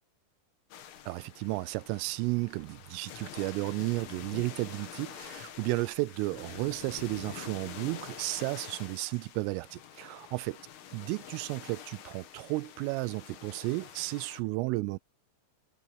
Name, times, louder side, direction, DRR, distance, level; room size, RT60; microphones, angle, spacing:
sound 1, 0.7-14.4, left 10 dB, 80° left, 5.0 m, -47 dB
voice 1, 1.1-10.6 10.9-15.0, right 22 dB, 85° right, 3.1 m, -33 dB
omnidirectional pair, 5.9 m